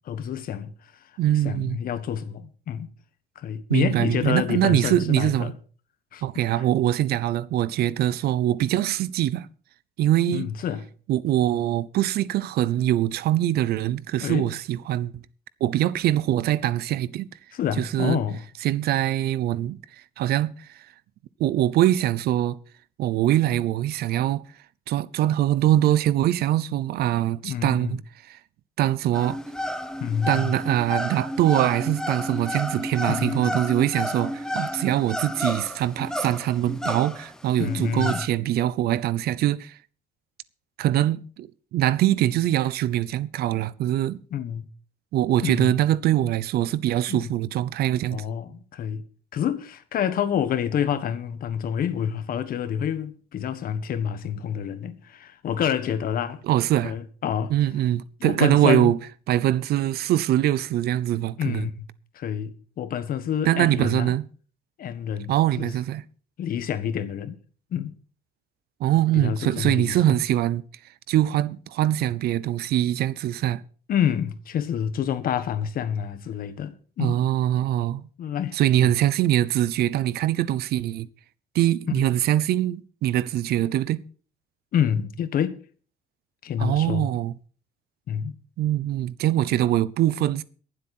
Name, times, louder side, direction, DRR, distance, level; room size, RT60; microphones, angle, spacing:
voice 1, 0.0-0.9 1.3-2.9 3.3-5.5 6.1-6.6 10.3-10.8 14.2-14.5 17.5-18.4 27.4-28.0 30.0-30.6 33.1-33.5 37.6-38.3 44.3-44.7 45.4-45.8 47.1-47.2 48.1-49.0 49.3-56.4 56.8-57.5 58.2-58.9 61.4-61.9 62.1-64.2 64.8-65.3 65.6-65.7 66.4-67.4 67.7-67.9 69.1-70.0 73.9-77.2 78.2-78.9 82.0-82.1 84.7-85.6 86.4-87.1 88.1-88.3, left 9 dB, 60° left, 1.5 m, -28 dB
voice 2, 1.2-1.8 3.7-5.5 6.2-9.5 10.0-10.5 11.1-15.2 15.6-17.3 17.8-18.2 18.6-19.8 20.2-20.5 21.4-22.6 23.0-24.4 24.9-28.0 28.3-28.4 28.8-29.4 30.3-39.8 40.8-44.2 45.1-48.2 56.5-56.9 57.5-59.0 59.3-61.7 63.4-64.2 65.3-66.0 68.8-70.6 71.1-73.6 77.0-78.1 78.5-81.1 81.5-84.0 86.6-87.3 88.6-90.4, right 13 dB, 70° right, 0.7 m, -23 dB
sound 1, 29.1-38.3, left 1 dB, 5° left, 1.1 m, -31 dB
22.5 x 7.8 x 4.3 m
cardioid pair, 110°, 17 cm